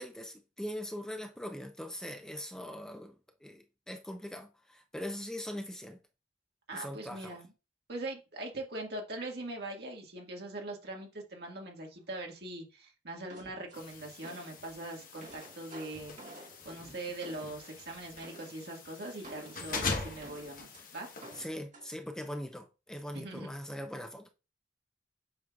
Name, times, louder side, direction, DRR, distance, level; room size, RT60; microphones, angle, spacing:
voice 1, 0.0-3.2 3.4-6.0 6.7-7.4 21.4-24.3, equal, 5° left, 0.5 m, -41 dB
voice 2, 6.7-7.5 7.9-21.1 23.1-23.5, right 2 dB, 65° right, 1.8 m, -42 dB
sound 1, 13.3-14.6 15.0-17.8 18.2-18.6 19.2-20.8 21.2-21.9, right 1 dB, 45° right, 1.9 m, -51 dB
sound 2, 13.7-21.4, left 4 dB, 50° left, 1.3 m, -42 dB
7.7 x 5.5 x 2.4 m
head